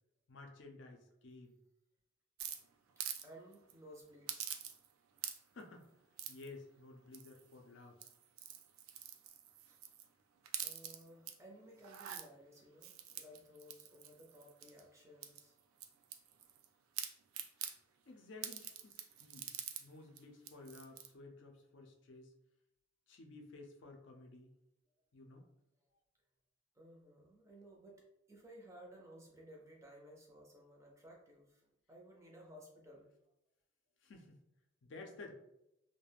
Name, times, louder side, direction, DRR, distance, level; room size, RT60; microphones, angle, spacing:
voice 1, 0.3-1.6 5.5-5.9 6.3-8.0 18.0-19.5 19.8-22.3 23.1-24.5 25.1-25.5 34.0-34.4 34.8-35.3, left 3 dB, 60° left, 2 dB, 0.4 m, -54 dB
sound 1, 2.4-3.3 3.5-3.7 4.3-4.9 5.2-5.6 6.2-6.5 7.1-7.5 7.9-10.1 10.4-11.3 11.8-12.2 12.8-14.8 15.2-16.7 17.0-17.8 18.4-19.8 20.2-20.3 20.5-21.1, right 10 dB, 90° right, 0.3 m, -45 dB
voice 2, 3.2-4.5 9.7-9.8 10.6-12.9 13.2-15.5 26.8-28.0 28.3-31.6 31.9-33.1, equal, 15° right, -1 dB, 0.4 m, -57 dB
2.3 x 2.1 x 3.2 m, 0.84 s
head